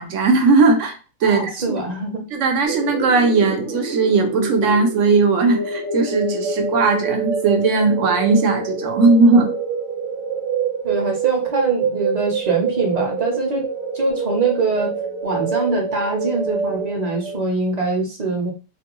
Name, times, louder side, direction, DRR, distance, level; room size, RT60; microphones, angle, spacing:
voice 1, 0.0-1.8 2.3-9.5, right 3 dB, 85° right, 5 dB, 1.0 m, -18 dB
voice 2, 1.2-2.2 10.8-13.6 13.9-14.9 15.2-18.5, right 3 dB, 40° right, 1 dB, 0.7 m, -23 dB
sound 1, 2.6-17.4, right 5 dB, 60° right, 1.0 m, -26 dB
2.5 x 2.2 x 2.9 m, 0.32 s
omnidirectional pair, 1.2 m